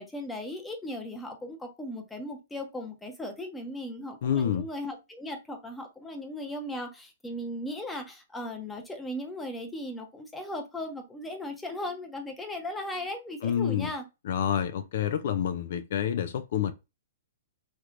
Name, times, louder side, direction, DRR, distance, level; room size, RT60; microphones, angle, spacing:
voice 1, 0.0-14.1, left 1 dB, 10° left, 0.8 m, -37 dB
voice 2, 4.2-4.7 13.4-13.9 14.3-16.7, left 9 dB, 65° left, 0.4 m, -28 dB
3.2 x 3.1 x 2.5 m
hypercardioid pair, 140°, 0 cm